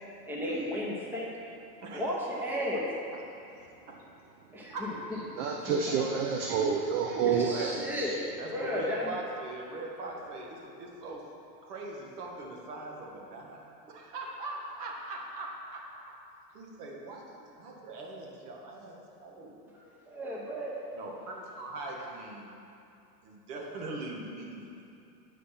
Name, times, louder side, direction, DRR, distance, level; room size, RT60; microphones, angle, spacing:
voice 1, 0.3-1.3 1.9-2.8 4.5-4.7 7.2-8.2 8.5-9.0 20.1-20.8, equal, 5° right, -4 dB, 0.9 m, -33 dB
voice 2, 1.8-2.8 3.1-3.3 3.9-4.0 4.7-4.9 8.4-11.2 11.6-16.2 16.5-19.5 20.9-22.5 23.2-24.8, right 2 dB, 65° right, -1 dB, 1.8 m, -42 dB
voice 3, 5.3-8.2, right 6 dB, 45° right, 1 dB, 0.7 m, -29 dB
8.6 x 5.0 x 5.7 m, 2.7 s
hypercardioid pair, 125°, 50 cm